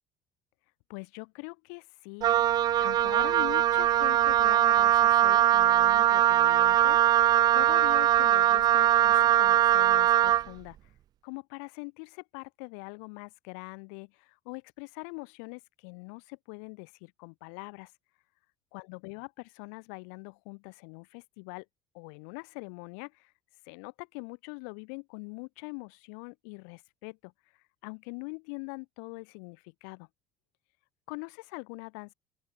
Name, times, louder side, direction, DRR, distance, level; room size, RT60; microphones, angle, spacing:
voice 1, 0.9-7.3 7.5-10.9 11.2-17.9 18.7-21.7 21.9-23.3 23.6-27.3 27.8-30.1 31.1-32.1, left 40 dB or more, 65° left, 5.5 m, -43 dB
Wind instrument woodwind instrument, 2.2-10.5, right 12 dB, 45° right, 1.3 m, -22 dB
open air
figure-of-eight pair, 60°, 9 cm